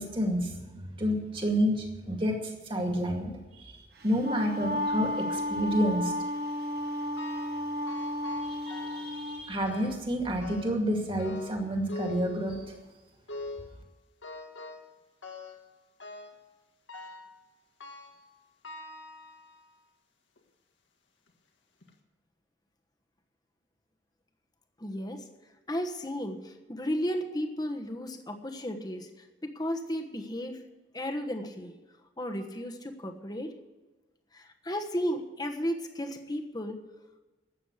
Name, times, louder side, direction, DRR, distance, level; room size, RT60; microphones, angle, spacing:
voice 1, 0.0-3.3 3.6-3.7 4.0-6.1 8.4-12.7, equal, 30° right, 2 dB, 2.3 m, -29 dB
Wind instrument woodwind instrument, 4.0-9.4, left 1 dB, 55° right, 1.6 m, -33 dB
sound 1, 7.2-7.6 7.9-9.2 9.6-10.1 10.4-10.9 11.2-12.9 13.3-13.8 14.2-14.9 15.2-15.7 16.0-16.4 16.9-17.3 17.8-18.3 18.6-19.7 20.4-20.5 21.3-21.4 21.8-21.9, left 2 dB, 90° left, 1.9 m, -43 dB
voice 2, 24.8-25.2 25.7-29.1 29.4-30.6 30.9-31.7 32.2-33.5 34.3-36.8, equal, 20° left, 4 dB, 1.2 m, -34 dB
13.0 x 8.3 x 8.2 m, 1.2 s
head